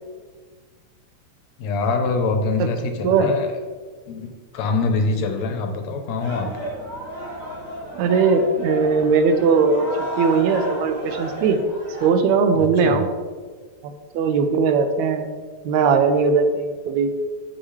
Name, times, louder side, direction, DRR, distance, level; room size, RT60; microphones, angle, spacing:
voice 1, 1.6-3.6 4.1-6.5 12.5-13.1, left 3 dB, 80° left, 5 dB, 1.9 m, -24 dB
sound 1, 6.2-12.1, equal, 20° right, 1.2 m, -32 dB
voice 2, 8.0-9.9 10.2-11.6 12.0-13.1 13.8-15.3 15.7-17.1, right 5 dB, 80° right, 8 dB, 1.9 m, -19 dB
7.8 x 6.3 x 3.1 m, 1.5 s
omnidirectional pair, 3.3 m